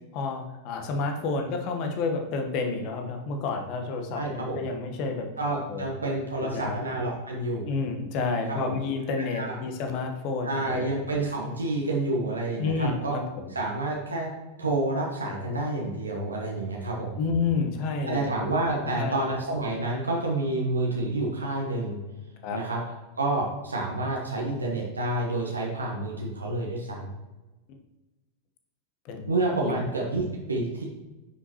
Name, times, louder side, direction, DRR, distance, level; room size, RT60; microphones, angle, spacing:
voice 1, 0.1-5.3 5.7-5.8 6.4-6.8 7.6-10.9 12.6-13.5 17.2-18.3 18.8-19.1 22.4-22.6 29.0-29.3 29.6-29.8, left 4 dB, 45° left, 4 dB, 1.2 m, -30 dB
voice 2, 4.1-4.6 5.4-7.7 8.5-8.7 9.3-9.5 10.4-13.2 13.5-14.3 14.6-17.2 18.1-22.0 22.5-22.8 23.2-27.1 29.3-30.8, right 2 dB, 80° right, -2 dB, 1.2 m, -29 dB
9.6 x 6.1 x 3.0 m, 1.1 s
figure-of-eight pair, 90°, 0 cm